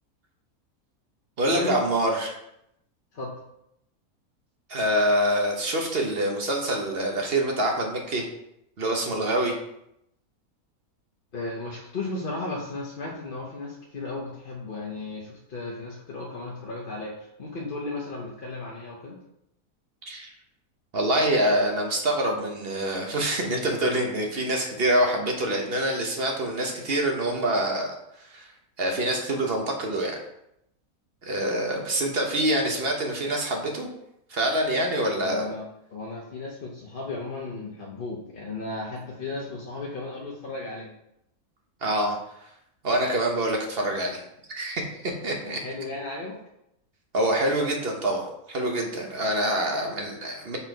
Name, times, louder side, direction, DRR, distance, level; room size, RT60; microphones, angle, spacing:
voice 1, 1.4-2.3 4.7-8.3 8.8-9.6 20.1-20.3 20.9-27.9 28.2-28.5 28.8-30.2 31.2-33.9 34.3-35.5 41.8-42.2 42.8-44.2 44.5-45.6 47.1-50.6, right 1 dB, 45° right, 2 dB, 1.1 m, -25 dB
voice 2, 11.3-19.2 35.2-40.9 45.4-46.3 49.4-49.5, left 3 dB, 45° left, -3 dB, 0.9 m, -35 dB
5.6 x 4.4 x 4.5 m, 0.81 s
omnidirectional pair, 1.5 m